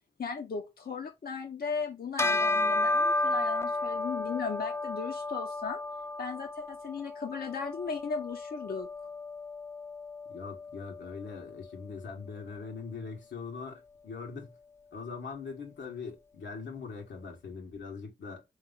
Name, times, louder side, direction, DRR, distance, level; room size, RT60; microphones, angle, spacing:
voice 1, 0.2-5.8 6.2-9.1, left 5 dB, 55° left, 0.8 m, -36 dB
Bell, 2.2-11.9, left 2 dB, 15° left, 0.6 m, -33 dB
voice 2, 10.3-14.5 14.9-18.4, left 5 dB, 85° left, 1.5 m, -41 dB
3.5 x 3.1 x 4.0 m
cardioid pair, 50°, 18 cm